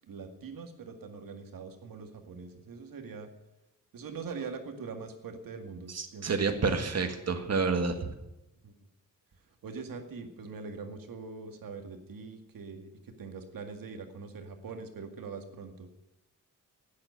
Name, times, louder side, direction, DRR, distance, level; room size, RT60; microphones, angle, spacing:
voice 1, 0.1-3.3 3.9-6.5 8.6-8.7 9.6-15.9, right 4 dB, 90° right, 6 dB, 2.1 m, -43 dB
voice 2, 5.9-8.1, right 4 dB, 50° right, 7 dB, 1.8 m, -29 dB
12.0 x 9.6 x 9.4 m, 0.95 s
wide cardioid pair, 135°, 33 cm